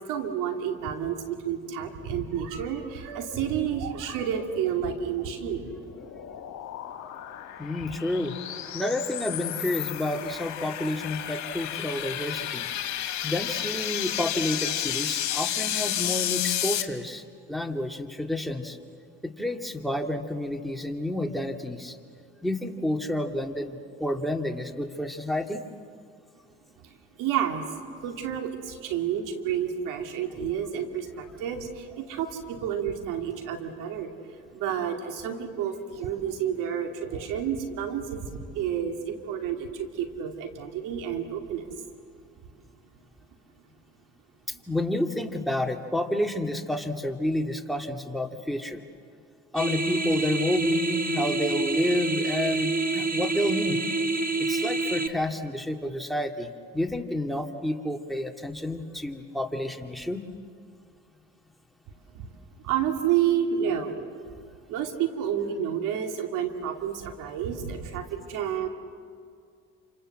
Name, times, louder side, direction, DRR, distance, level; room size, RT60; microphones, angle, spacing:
voice 1, 0.0-5.7 26.8-26.9 27.2-27.6 28.0-34.1 34.5-41.7 62.1-62.3 62.6-64.1 64.7-68.7, right 9 dB, 80° right, 4 dB, 2.6 m, -30 dB
sound 1, 5.3-16.8, left 11 dB, 65° left, 2.2 m, -32 dB
voice 2, 7.6-8.3 8.7-12.7 13.2-17.2 17.5-18.8 19.2-22.0 22.4-25.6 44.7-48.8 49.5-53.8 54.4-60.2, left 1 dB, ahead, 5 dB, 2.4 m, -30 dB
sound 2, 49.6-55.1, right 3 dB, 25° right, 1.7 m, -27 dB
28.0 x 26.5 x 7.8 m, 2.3 s
supercardioid pair, 75°, 31 cm